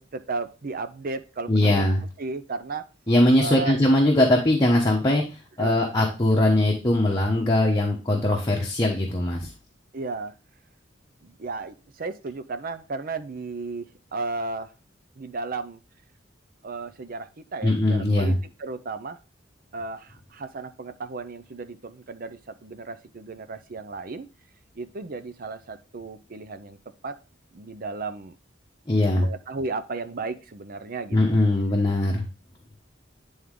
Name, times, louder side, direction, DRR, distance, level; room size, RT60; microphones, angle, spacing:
voice 1, 0.0-1.9 2.2-2.8 3.4-3.8 5.6-5.8 9.9-10.3 11.2-14.7 15.2-15.8 16.6-19.2 19.7-24.3 24.8-26.8 27.0-27.2 27.5-28.4 29.1-31.2, right 3 dB, 50° right, 10 dB, 0.6 m, -34 dB
voice 2, 1.5-2.0 3.1-5.2 5.6-9.5 17.6-18.4 28.9-29.3 31.1-32.2, left 1 dB, 20° left, -2 dB, 1.0 m, -21 dB
9.4 x 3.6 x 3.7 m, 0.32 s
head